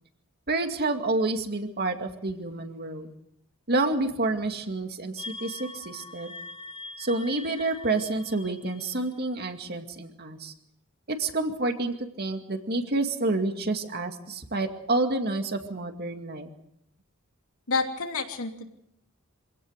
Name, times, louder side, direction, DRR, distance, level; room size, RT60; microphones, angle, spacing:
voice 1, 0.5-3.1 3.7-6.3 7.0-10.5 11.1-16.5, right 2 dB, 50° right, 6 dB, 2.3 m, -29 dB
sound 1, 5.2-9.6, left 3 dB, 30° left, 3.6 m, -43 dB
voice 2, 17.7-18.7, left 4 dB, 85° left, 3 dB, 3.0 m, -29 dB
26.0 x 17.5 x 6.5 m, 0.76 s
head